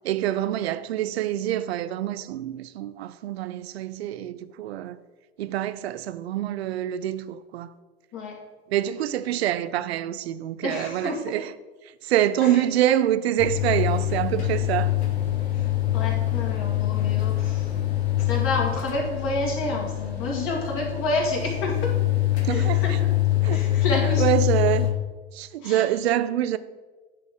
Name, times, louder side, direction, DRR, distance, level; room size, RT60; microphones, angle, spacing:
voice 1, 0.0-5.0 5.4-7.7 8.7-11.5 12.0-14.9 22.4-23.0 23.4-23.7 24.2-25.0 25.3-26.6, right 12 dB, 75° right, 0.5 m, -26 dB
voice 2, 10.6-11.2 12.4-12.6 15.5-15.7 15.9-17.7 18.2-21.9 22.5-23.0 23.5-24.3 25.6-25.8, left 2 dB, 40° left, 2.2 m, -29 dB
sound 1, 13.4-24.9, left 15 dB, 80° left, 1.2 m, -25 dB
9.7 x 3.8 x 3.7 m
hypercardioid pair, 100°, 32 cm